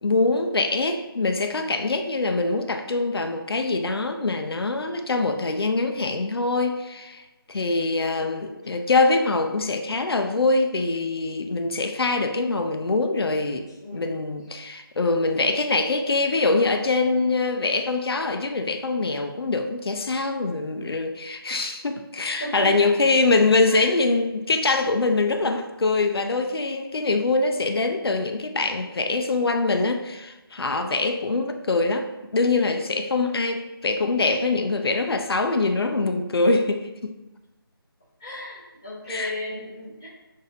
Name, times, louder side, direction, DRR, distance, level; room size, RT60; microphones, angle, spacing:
voice 1, 0.0-7.2 7.5-37.1 39.1-39.3, left 3 dB, 75° left, 6 dB, 0.5 m, -24 dB
voice 2, 13.8-14.3 22.3-23.2 23.7-23.9 38.2-40.1, equal, 10° left, -9 dB, 0.4 m, -35 dB
6.6 x 2.7 x 2.6 m, 1.0 s
figure-of-eight pair, 175°, 13 cm